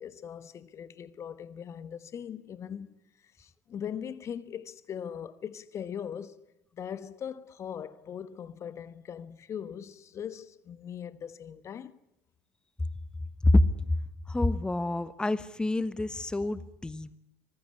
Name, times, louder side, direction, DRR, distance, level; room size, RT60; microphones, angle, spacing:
voice 1, 0.0-6.4 6.7-11.9, left 8 dB, 40° left, 1.3 m, -40 dB
voice 2, 13.4-14.0 14.3-17.2, left 1 dB, 10° left, 1.2 m, -26 dB
25.5 x 19.5 x 9.7 m
hypercardioid pair, 65°, 7 cm